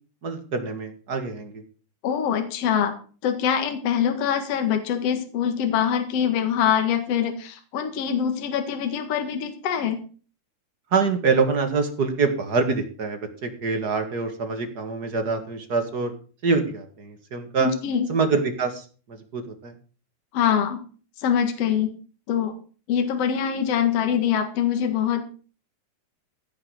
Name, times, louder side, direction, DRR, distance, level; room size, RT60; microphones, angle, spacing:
voice 1, 0.2-1.5 10.9-16.1 16.4-17.7 18.1-18.8 19.3-19.7, right 4 dB, 40° right, 6 dB, 1.7 m, -25 dB
voice 2, 2.0-2.9 3.2-10.0 17.6-18.1 20.3-20.8 21.2-21.9 22.3-22.5 22.9-25.2, left 8 dB, 55° left, 6 dB, 2.5 m, -24 dB
16.0 x 6.3 x 6.4 m, 0.39 s
omnidirectional pair, 3.8 m